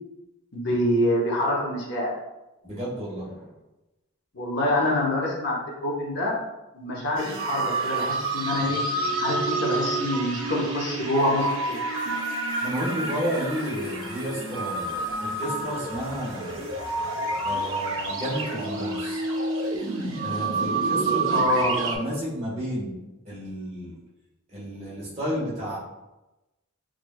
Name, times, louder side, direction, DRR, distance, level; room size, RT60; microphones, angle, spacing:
voice 1, 0.5-2.1 4.3-6.4 6.7-8.8 9.2-11.8 21.3-21.7, left 1 dB, 50° left, -3 dB, 0.9 m, -26 dB
voice 2, 2.6-3.5 12.6-16.6 17.4-19.2 20.2-23.0 23.2-24.0 24.5-25.8, equal, 30° right, -6 dB, 1.3 m, -32 dB
sound 1, 7.2-22.0, right 3 dB, 70° right, 0.7 m, -28 dB
6.0 x 2.5 x 2.3 m, 1.0 s
head